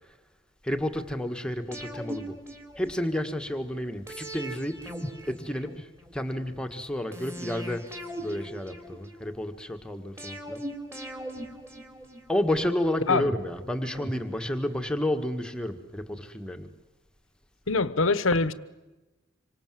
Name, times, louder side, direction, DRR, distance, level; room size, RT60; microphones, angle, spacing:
voice 1, 0.6-2.3 2.8-4.8 5.3-5.9 6.1-7.8 8.2-10.6 12.3-16.7, left 1 dB, 5° left, 1.6 m, -30 dB
sound 1, 1.7-3.3 4.1-6.2 7.1-9.3 10.2-12.5 13.2-14.9 15.2-15.3, equal, 15° right, 3.2 m, -39 dB
voice 2, 17.7-18.5, left 3 dB, 80° left, 1.2 m, -23 dB
26.5 x 25.5 x 7.7 m
head